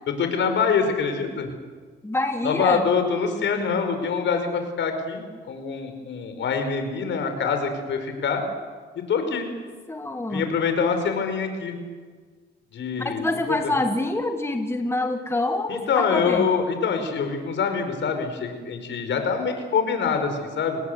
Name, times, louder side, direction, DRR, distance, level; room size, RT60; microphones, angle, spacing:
voice 1, 0.2-1.5 2.4-8.4 9.1-9.5 10.3-11.8 12.7-13.7 15.7-20.8, left 5 dB, 70° left, 7 dB, 5.2 m, -25 dB
voice 2, 2.0-2.9 9.3-9.4 9.9-10.5 13.0-16.5, left 2 dB, 10° left, 5 dB, 2.0 m, -26 dB
29.0 x 19.5 x 8.3 m, 1.5 s
cardioid pair, 90°, 20 cm